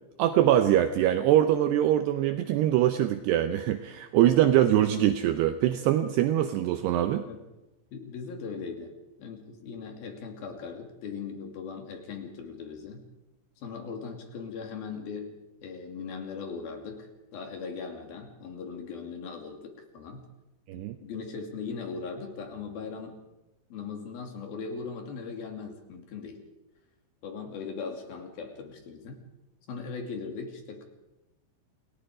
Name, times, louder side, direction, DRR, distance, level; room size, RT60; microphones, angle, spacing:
voice 1, 0.2-7.2 20.7-21.0, right 12 dB, 75° right, 8 dB, 2.6 m, -23 dB
voice 2, 7.9-13.0 13.6-15.3 15.6-20.3 20.7-23.2 23.7-26.4 27.2-29.2 29.7-30.9, left 5 dB, 55° left, 4 dB, 4.2 m, -39 dB
28.5 x 18.5 x 4.9 m, 0.99 s
omnidirectional pair, 5.4 m